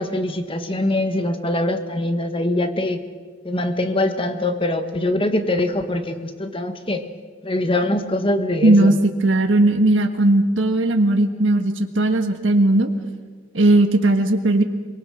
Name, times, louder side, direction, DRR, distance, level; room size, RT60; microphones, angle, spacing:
voice 1, 0.0-3.0 3.4-7.0 7.4-9.0, left 1 dB, 30° left, 8 dB, 1.6 m, -23 dB
voice 2, 8.6-8.9 9.2-12.9 13.5-14.6, right 2 dB, 80° right, 6 dB, 1.6 m, -17 dB
23.5 x 23.0 x 6.5 m, 1.5 s
head